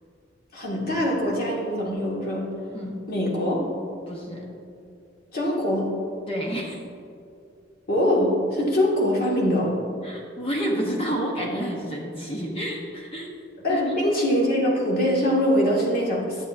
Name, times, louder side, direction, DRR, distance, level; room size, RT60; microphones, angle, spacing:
voice 1, 0.5-2.5 3.1-3.6 5.3-5.9 7.9-9.7 13.6-16.4, equal, 55° left, -3 dB, 1.8 m, -23 dB
voice 2, 2.7-3.0 4.1-4.5 6.3-6.8 10.0-13.4 13.7-13.9, equal, 30° left, -1 dB, 0.9 m, -29 dB
10.5 x 7.2 x 2.6 m, 2.5 s
head